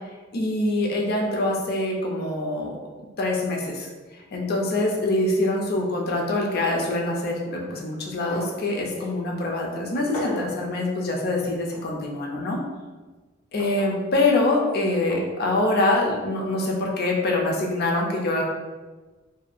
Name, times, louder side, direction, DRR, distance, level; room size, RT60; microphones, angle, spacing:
voice 1, 0.3-2.8 3.2-3.9 4.3-12.6 13.5-18.4, left 2 dB, 50° left, -1 dB, 0.5 m, -24 dB
sound 1, 8.3-8.6 9.0-9.1 10.1-10.6 11.7-11.9 13.6-13.9 15.1-15.3 16.5-16.7, equal, 85° left, 0.9 m, -36 dB
2.6 x 2.3 x 2.4 m, 1.3 s
head